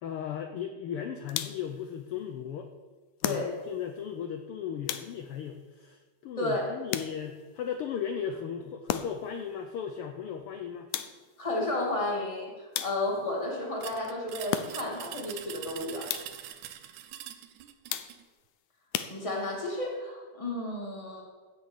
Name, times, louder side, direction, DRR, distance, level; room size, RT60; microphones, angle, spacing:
voice 1, 0.0-2.7 3.2-10.9, left 8 dB, 75° left, 6 dB, 1.3 m, -36 dB
sound 1, 1.3-1.8 3.2-3.9 4.9-5.5 6.9-7.5 8.9-9.4 10.9-11.4 12.7-13.3 14.5-15.1 16.1-16.5 17.9-18.4 18.9-19.7, left 11 dB, 90° left, 2.2 m, -36 dB
voice 2, 6.4-6.7 11.4-12.5 12.8-16.1 19.1-21.2, left 2 dB, 10° left, -1 dB, 2.2 m, -32 dB
sound 2, 13.8-18.2, right 11 dB, 85° right, 2.3 m, -43 dB
16.5 x 6.5 x 7.1 m, 1.4 s
omnidirectional pair, 3.4 m